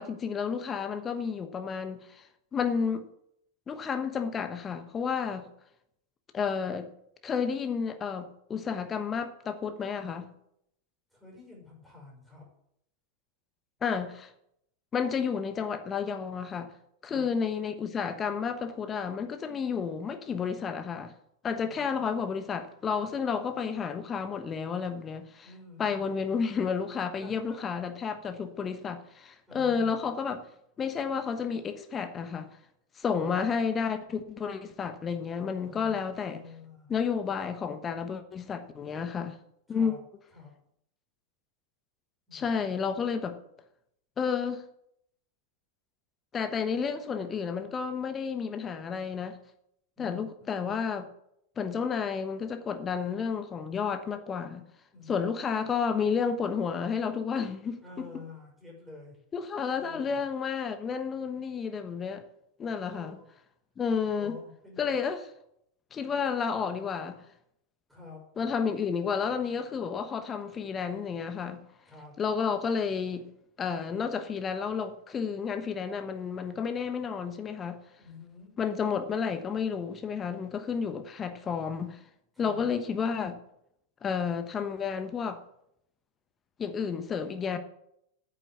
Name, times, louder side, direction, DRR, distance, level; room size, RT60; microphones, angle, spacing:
voice 1, 0.0-2.2 2.5-3.1 3.7-5.5 6.3-6.9 7.2-10.3 13.8-14.3 14.9-16.7 17.0-21.1 21.4-25.5 25.8-30.4 30.8-32.5 33.0-36.4 36.9-39.4 39.7-39.9 42.3-43.4 44.2-44.6 46.3-49.4 50.0-51.1 51.6-54.7 55.1-57.8 59.3-62.2 62.6-63.2 63.8-64.4 64.8-65.2 65.9-67.2 68.4-71.6 72.2-73.3 73.6-77.8 78.6-82.0 82.4-83.4 84.0-85.4 86.6-87.6, left 6 dB, 20° left, 1.1 m, -31 dB
voice 2, 11.1-12.5 17.0-17.2 21.6-22.0 25.4-26.1 27.2-27.6 29.5-29.9 33.1-33.4 35.3-36.0 36.2-37.0 39.7-40.0 40.3-40.5 42.3-42.5 50.0-50.5 54.9-55.3 57.8-59.2 59.7-60.2 62.9-63.3 64.1-65.0 66.3-66.7 67.9-68.2 71.9-72.1 78.0-78.5 82.3-82.7, left 4 dB, 5° right, 5.6 m, -49 dB
9.0 x 7.7 x 8.1 m
figure-of-eight pair, 90°, 0 cm